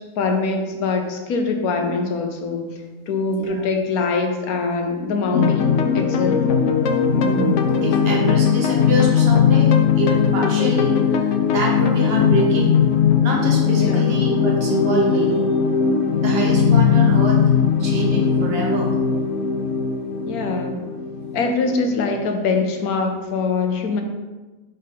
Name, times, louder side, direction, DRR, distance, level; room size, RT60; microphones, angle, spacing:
voice 1, 0.2-2.7 3.1-6.5 13.8-14.1 20.2-20.8 21.3-24.0, left 4 dB, 85° left, 4 dB, 1.3 m, -23 dB
sound 1, 5.3-22.2, left 7 dB, 65° left, 0.8 m, -19 dB
voice 2, 7.1-12.8 13.2-15.4 16.2-17.4 17.8-18.9, right 2 dB, 45° right, -1 dB, 1.4 m, -25 dB
5.7 x 5.3 x 3.7 m, 1.2 s
omnidirectional pair, 1.5 m